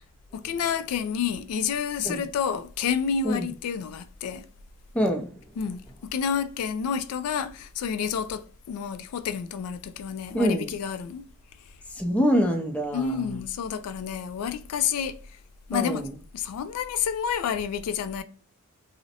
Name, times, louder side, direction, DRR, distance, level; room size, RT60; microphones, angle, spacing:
voice 1, 0.3-4.4 5.6-5.8 6.1-11.2 12.9-15.2 15.7-16.1 16.3-18.2, left 7 dB, 85° left, 0.3 m, -29 dB
voice 2, 4.9-5.3 10.3-10.7 12.0-13.4 15.7-16.1, equal, 5° left, 0.3 m, -25 dB
2.5 x 2.0 x 2.6 m
head